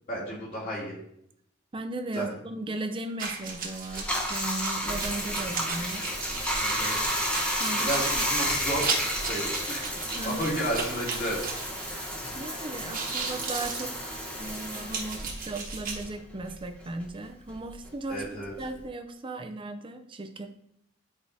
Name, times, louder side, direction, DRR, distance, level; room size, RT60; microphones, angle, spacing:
voice 1, 0.1-1.0 2.1-2.3 6.5-7.0 7.8-8.8 9.2-9.9 10.2-11.4 18.1-18.5, equal, 40° left, -6 dB, 2.7 m, -32 dB
voice 2, 1.7-6.1 7.6-8.3 10.1-10.6 12.3-18.2 18.6-20.5, right 2 dB, 25° right, 7 dB, 0.5 m, -36 dB
sound 1, 3.2-12.5 12.7-16.0, right 4 dB, 40° right, 1.2 m, -36 dB
Bathtub (filling or washing), 3.9-16.7 17.0-18.8, equal, 5° left, 1.0 m, -32 dB
10.0 x 4.8 x 2.7 m, 0.74 s
head